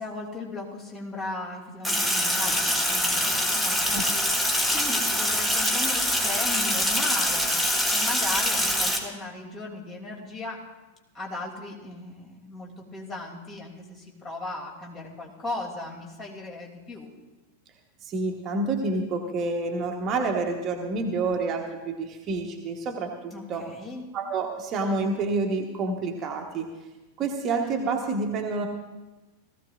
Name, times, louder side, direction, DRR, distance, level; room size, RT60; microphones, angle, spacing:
voice 1, 0.0-4.0 4.7-7.6 7.9-10.6 11.1-17.1 23.3-24.0, left 2 dB, 25° left, -1 dB, 2.9 m, -37 dB
Sink (filling or washing), 1.8-9.0, equal, 5° left, 1.7 m, -24 dB
voice 2, 3.9-4.3 18.0-23.6 24.1-26.7 27.2-28.7, right 3 dB, 30° right, 3 dB, 1.3 m, -28 dB
18.0 x 14.5 x 2.5 m, 1.1 s
figure-of-eight pair, 90°, 0 cm